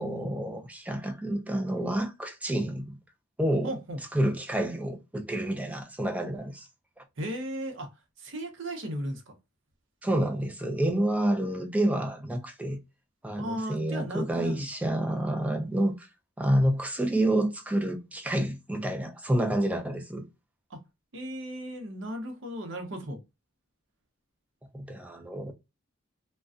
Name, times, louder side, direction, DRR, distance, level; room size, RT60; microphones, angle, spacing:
voice 1, 0.0-3.0 3.4-3.7 4.1-6.7 10.0-12.8 13.2-16.1 16.4-20.2 24.7-25.5, right 1 dB, 5° right, 0.4 m, -28 dB
voice 2, 3.6-4.0 7.2-9.3 13.4-14.7 20.7-20.8 21.1-23.2, equal, 65° right, 0.7 m, -36 dB
2.4 x 2.2 x 2.4 m
head